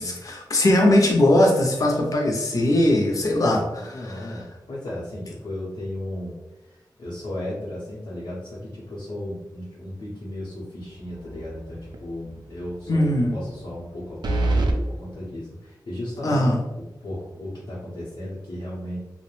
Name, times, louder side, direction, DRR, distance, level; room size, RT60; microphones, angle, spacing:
voice 1, 0.0-4.3 12.9-13.3 16.2-16.6, left 1 dB, 50° left, -1 dB, 0.5 m, -20 dB
voice 2, 3.1-6.3 6.6-19.0, left 1 dB, 90° left, -8 dB, 0.7 m, -35 dB
sound 1, 11.1-11.6 11.9-12.0 14.2-14.8, right 2 dB, 75° right, 0.4 m, -23 dB
2.3 x 2.0 x 3.0 m, 0.99 s
wide cardioid pair, 90°, 8 cm